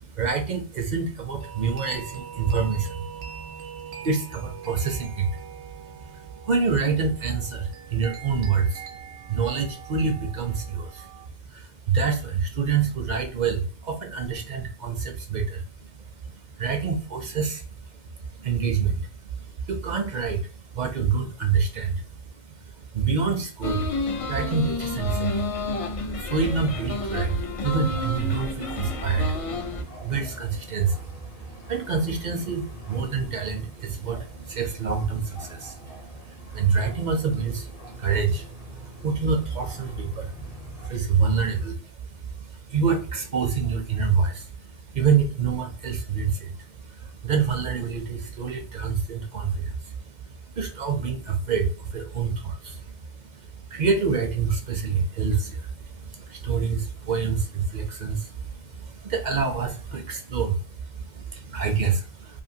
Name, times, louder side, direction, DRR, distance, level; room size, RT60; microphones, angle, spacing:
voice 1, 0.0-3.0 4.0-5.4 6.2-8.8 9.3-11.1 11.5-15.9 16.2-17.9 18.4-22.3 22.6-25.6 25.9-31.0 31.5-50.3 50.6-62.4, right 5 dB, 55° right, 5 dB, 0.5 m, -27 dB
sound 1, 1.4-11.3, right 7 dB, 80° right, 0.9 m, -43 dB
sound 2, 23.6-29.8, left 2 dB, 55° left, 0.4 m, -30 dB
sound 3, 27.9-40.9, left 1 dB, 40° left, 0.7 m, -45 dB
2.6 x 2.5 x 2.6 m, 0.38 s
omnidirectional pair, 1.1 m